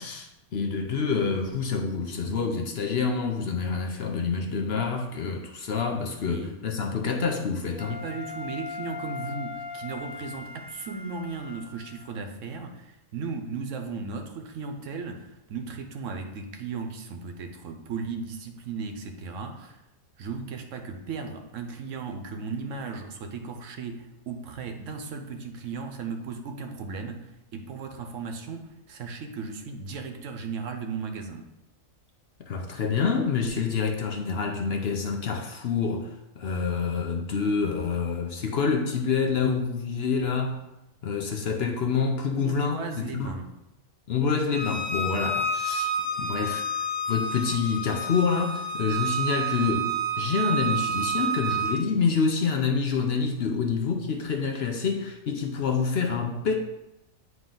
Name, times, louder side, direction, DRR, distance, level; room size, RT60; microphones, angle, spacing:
voice 1, 0.0-8.0 32.5-36.1 36.4-40.6 41.0-43.4 44.1-45.9 46.2-46.6 47.1-49.9 50.2-56.5, left 5 dB, 60° left, 3 dB, 0.8 m, -27 dB
voice 2, 6.3-6.6 7.9-19.8 20.2-31.5 42.4-43.5, right 4 dB, 70° right, 5 dB, 1.1 m, -36 dB
Wind instrument woodwind instrument, 7.8-12.1, left 4 dB, 5° right, 1.2 m, -39 dB
Bowed string instrument, 44.5-51.7, right 3 dB, 35° right, 1.2 m, -29 dB
9.1 x 3.0 x 3.8 m, 0.89 s
omnidirectional pair, 1.4 m